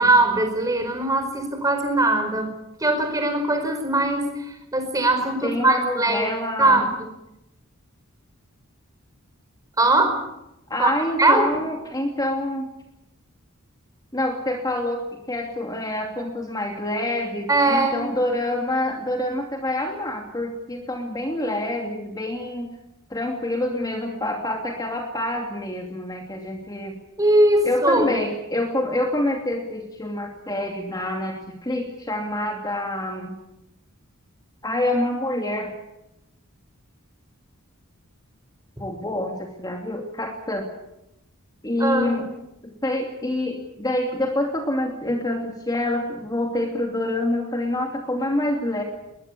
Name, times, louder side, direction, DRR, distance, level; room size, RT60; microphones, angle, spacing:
voice 1, 0.0-6.3 6.6-6.8 9.8-10.2 10.8-10.9 11.2-11.6 17.5-18.1 27.2-28.1 41.8-42.2, right 2 dB, 15° right, 6 dB, 4.8 m, -20 dB
voice 2, 5.4-6.9 10.7-12.7 14.1-22.7 23.1-27.0 27.6-33.4 34.6-35.7 38.8-40.6 41.6-42.3 42.6-48.8, left 1 dB, 20° left, 2 dB, 2.7 m, -27 dB
21.5 x 21.0 x 8.5 m, 0.88 s
head